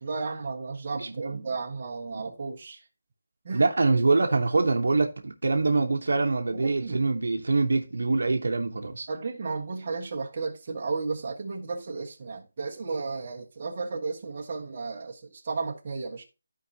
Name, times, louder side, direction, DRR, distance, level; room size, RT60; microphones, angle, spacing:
voice 1, 0.0-2.8 3.4-3.7 6.5-7.0 9.1-16.2, right 4 dB, 25° right, 1.4 m, -33 dB
voice 2, 0.9-1.4 2.1-2.2 3.5-9.1, right 3 dB, 65° right, 1.1 m, -25 dB
14.0 x 4.7 x 2.8 m
figure-of-eight pair, 180°, 0 cm